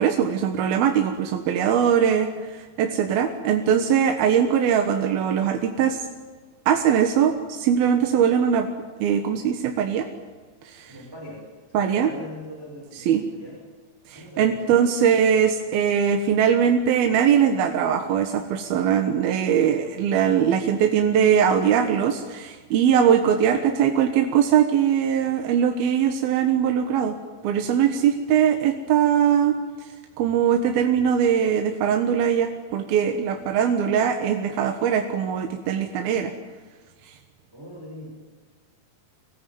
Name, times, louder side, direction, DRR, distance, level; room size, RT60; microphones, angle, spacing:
voice 1, 0.0-6.0 6.7-8.7 9.0-10.1 10.6-10.9 11.7-12.1 12.9-13.2 14.1-27.2 27.4-36.3 37.1-37.2, right 8 dB, 80° right, 5 dB, 3.2 m, -21 dB
voice 2, 10.9-11.4 11.8-13.5 14.1-14.9 37.5-38.1, equal, 5° right, -2 dB, 4.8 m, -41 dB
25.5 x 19.0 x 9.3 m, 1.5 s
omnidirectional pair, 4.3 m